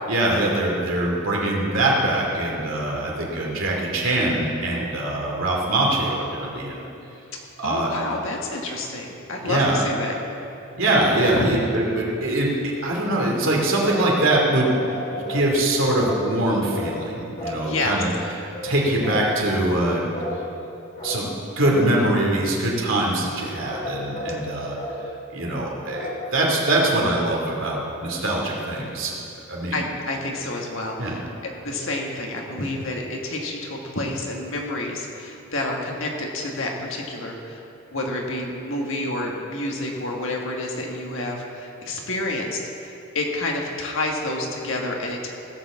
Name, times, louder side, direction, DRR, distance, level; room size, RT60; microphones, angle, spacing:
voice 1, 0.1-6.9 7.6-7.9 9.4-9.8 10.8-12.5 12.8-14.7 15.1-18.1 18.6-20.0 21.0-21.3 21.6-24.8 25.3-29.1 29.5-29.8 31.0-31.2, right 1 dB, 60° right, -2 dB, 2.6 m, -23 dB
voice 2, 7.6-10.1 11.2-11.5 17.6-18.0 29.7-31.2 31.6-37.6 37.9-45.3, left 2 dB, 65° left, 0 dB, 1.6 m, -29 dB
sound 1, 13.8-14.4 14.8-15.5 15.9-16.3 16.7-17.0 17.4-17.6 18.5-18.7 19.0-19.3 20.1-20.4 21.0-21.3 21.6-21.9 23.5-24.4 24.7-25.0 25.9-26.2, left 1 dB, 30° left, 2.1 m, -33 dB
16.5 x 5.9 x 7.3 m, 2.8 s
head